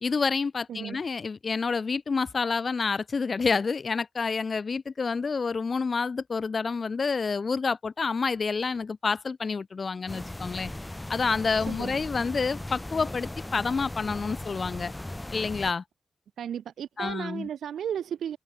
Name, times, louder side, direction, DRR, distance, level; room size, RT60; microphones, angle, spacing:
voice 1, 0.0-10.7 11.1-14.9 15.3-15.8 17.0-17.5, left 4 dB, 45° left, 0.3 m, -28 dB
sound 1, 10.1-15.7, left 1 dB, 15° left, 2.4 m, -38 dB
voice 2, 11.7-12.0 16.4-18.4, right 9 dB, 80° right, 0.6 m, -34 dB
cardioid pair, 70°, 0 cm